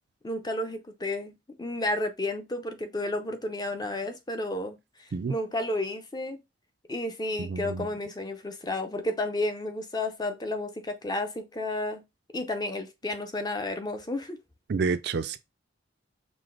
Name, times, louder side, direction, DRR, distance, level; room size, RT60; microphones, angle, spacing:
voice 1, 0.2-4.8 5.3-6.4 6.9-12.0 12.3-14.4, left 1 dB, 20° left, 0.5 m, -32 dB
voice 2, 7.4-7.9 14.7-15.4, right 4 dB, 60° right, 0.4 m, -29 dB
4.8 x 2.1 x 3.7 m
head